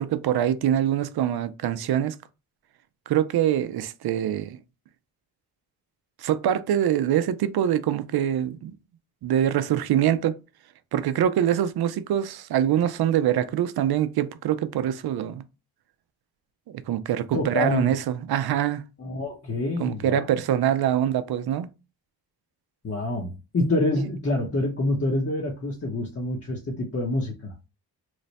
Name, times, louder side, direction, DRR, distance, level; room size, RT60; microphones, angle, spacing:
voice 1, 0.0-2.2 3.1-4.6 6.2-8.7 9.2-10.4 10.9-15.4 16.9-18.8 19.8-21.7, right 10 dB, 65° right, 0.5 m, -24 dB
voice 2, 17.3-17.9 19.0-20.3 22.8-27.5, left 2 dB, 35° left, 0.8 m, -27 dB
3.2 x 2.1 x 4.0 m
cardioid pair, 70°, 40 cm